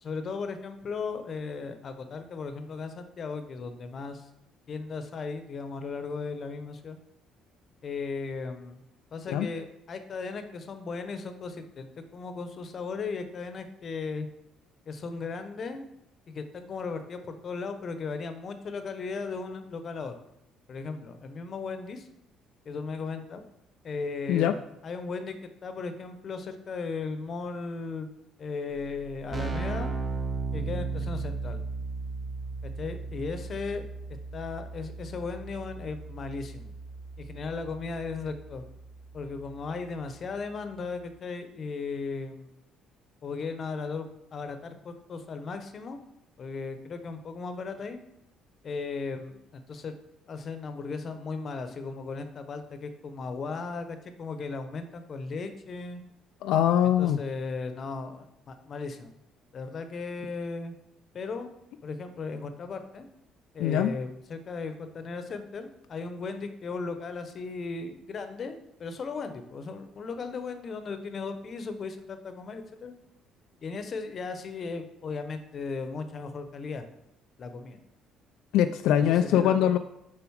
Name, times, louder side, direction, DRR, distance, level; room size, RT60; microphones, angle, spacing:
voice 1, 0.0-4.2 4.7-7.0 7.8-8.8 9.1-14.3 14.9-15.8 16.3-20.1 20.7-22.1 22.6-23.4 23.8-25.4 25.6-28.1 28.4-29.9 30.5-31.6 32.6-33.8 34.1-36.7 37.2-38.6 39.1-42.5 43.2-44.1 44.3-46.0 46.4-48.0 48.6-49.9 50.3-56.0 57.0-59.1 59.5-60.7 61.1-61.5 61.8-63.1 63.5-72.9 73.6-76.9 77.4-77.8 79.0-79.7, left 4 dB, 40° left, 8 dB, 0.8 m, -36 dB
Keyboard (musical), 29.0-39.6, right 4 dB, 30° right, 0.9 m, -36 dB
voice 2, 56.4-57.2 63.6-63.9 78.5-79.8, left 10 dB, 80° left, 9 dB, 0.3 m, -22 dB
7.0 x 5.0 x 4.7 m, 0.82 s
cardioid pair, 125°, 0 cm